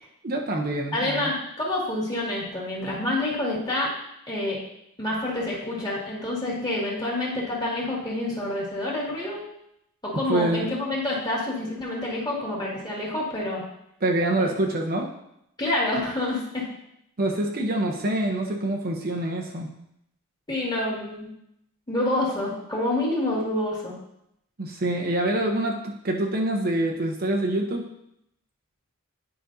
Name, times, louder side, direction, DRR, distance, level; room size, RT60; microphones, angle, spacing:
voice 1, 0.2-1.3 10.1-10.7 14.0-15.1 17.2-19.7 24.6-27.9, right 1 dB, 45° right, 1 dB, 0.7 m, -26 dB
voice 2, 0.9-3.9 4.3-4.6 5.0-9.4 10.0-13.6 15.6-16.7 20.5-21.3 21.9-23.9, left 1 dB, 20° left, -5 dB, 2.0 m, -27 dB
10.5 x 5.2 x 2.6 m, 0.79 s
head